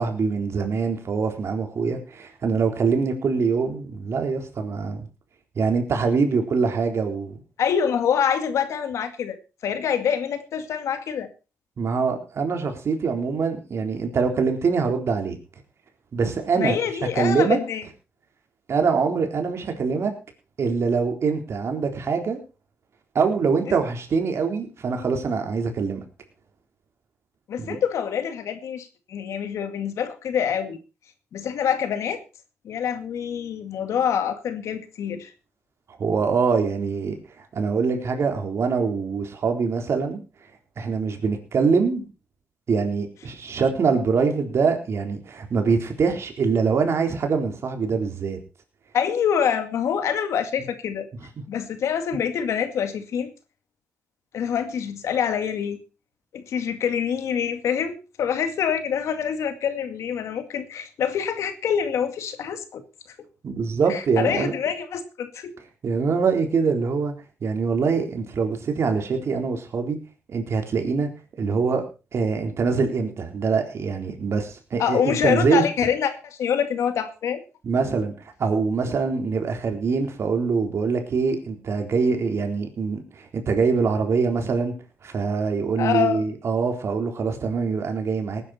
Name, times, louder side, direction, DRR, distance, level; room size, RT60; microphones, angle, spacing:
voice 1, 0.0-5.1 5.6-7.4 11.8-15.4 16.1-16.8 17.1-17.6 18.7-20.1 20.6-22.4 23.1-26.0 27.6-27.8 36.0-37.1 37.6-40.2 40.8-42.1 42.7-48.4 63.4-64.5 65.8-67.1 67.4-70.0 70.3-71.1 71.4-71.8 72.1-75.6 77.6-78.1 78.4-84.7 85.0-88.4, right 5 dB, 65° right, 4 dB, 3.9 m, -24 dB
voice 2, 7.6-9.4 9.6-11.3 16.6-17.8 27.5-30.8 31.3-32.2 32.6-35.3 48.9-51.1 51.5-53.3 54.3-55.8 56.3-62.8 63.9-65.5 74.8-77.4 85.8-86.2, left 8 dB, 85° left, 9 dB, 2.2 m, -25 dB
19.0 x 10.5 x 4.4 m, 0.32 s
cardioid pair, 85°, 5 cm